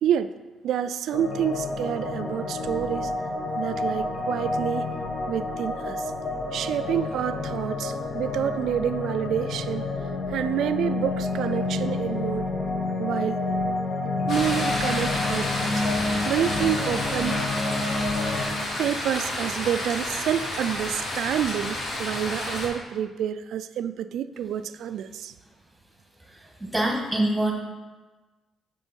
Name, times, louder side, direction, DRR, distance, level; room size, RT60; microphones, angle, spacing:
voice 1, 0.0-0.4 0.6-3.1 3.6-4.9 5.3-6.1 6.5-9.9 10.3-12.5 13.0-13.4 14.2-15.9 16.2-17.5 18.8-25.3, right 9 dB, 75° right, 12 dB, 0.3 m, -28 dB
sound 1, 1.1-18.5, left 2 dB, 45° left, 1.2 m, -29 dB
sound 2, 14.3-22.7, left 1 dB, 65° left, 2.3 m, -30 dB
voice 2, 26.3-27.5, right 1 dB, 5° right, 0 dB, 1.8 m, -25 dB
7.5 x 5.3 x 4.4 m, 1.3 s
cardioid pair, 90°, 0 cm